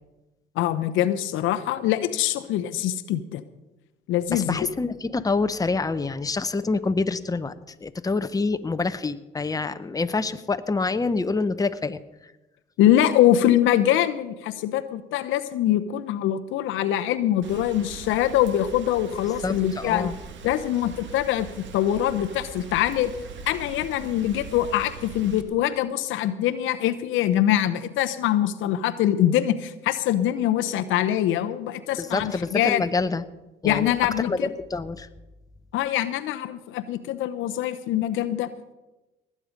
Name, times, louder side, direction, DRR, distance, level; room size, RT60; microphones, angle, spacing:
voice 1, 0.6-3.4 4.1-4.7 12.8-20.1 20.4-21.5 21.7-23.1 23.5-32.8 33.6-34.5 35.7-38.5, left 12 dB, 75° left, 10 dB, 0.8 m, -23 dB
voice 2, 4.3-12.0 19.4-20.2 32.0-33.2 33.6-33.9 34.2-34.4 34.7-35.1, left 3 dB, 15° left, 10 dB, 0.9 m, -26 dB
Rain, 17.4-25.4, right 5 dB, 65° right, 1.6 m, -41 dB
19.0 x 8.6 x 5.2 m, 1.0 s
supercardioid pair, 65°, 21 cm